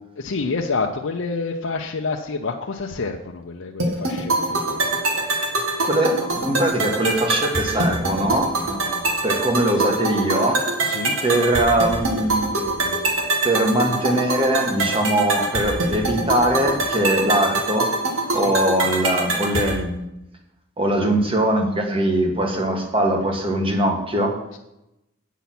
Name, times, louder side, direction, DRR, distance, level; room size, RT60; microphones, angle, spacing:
voice 1, 0.2-4.8 10.8-11.2 18.3-18.5 24.5-24.6, left 4 dB, 75° left, 1 dB, 0.7 m, -28 dB
sound 1, 3.8-19.8, right 2 dB, 90° right, 1.8 m, -24 dB
voice 2, 5.8-10.6 11.2-13.0 13.4-17.9 18.3-20.0 20.8-24.4, right 1 dB, 25° right, 3 dB, 1.5 m, -21 dB
8.3 x 7.0 x 6.0 m, 0.87 s
head